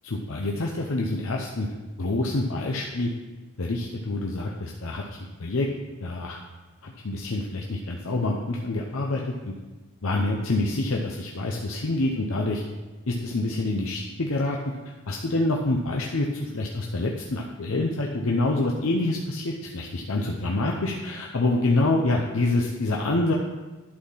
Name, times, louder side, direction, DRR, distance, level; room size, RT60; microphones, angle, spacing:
voice 1, 0.0-1.7 2.0-3.1 3.6-5.0 5.4-5.7 6.0-6.4 6.8-9.5 10.0-12.6 13.1-14.6 15.1-23.3, left 2 dB, 65° left, -1 dB, 0.7 m, -26 dB
11.5 x 4.3 x 5.6 m, 1.2 s
head